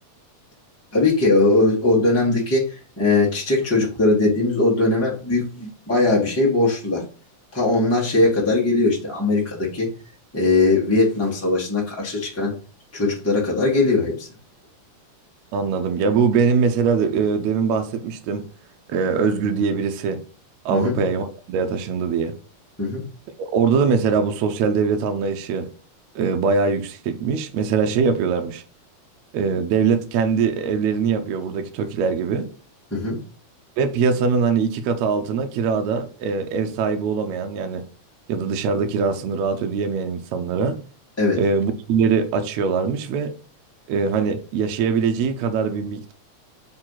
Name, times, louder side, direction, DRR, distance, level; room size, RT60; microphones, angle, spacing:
voice 1, 0.9-7.0 7.5-9.9 10.3-12.6 12.9-14.3 20.7-21.0 22.8-23.0 32.9-33.2 41.2-41.4, left 2 dB, 5° left, 1.3 m, -20 dB
voice 2, 15.5-18.5 18.9-20.2 20.7-22.4 23.4-25.7 26.2-28.6 29.3-32.5 33.8-37.8 38.3-40.8 41.4-43.3 43.9-46.1, right 5 dB, 80° right, 1.9 m, -22 dB
4.8 x 4.4 x 5.7 m
omnidirectional pair, 3.3 m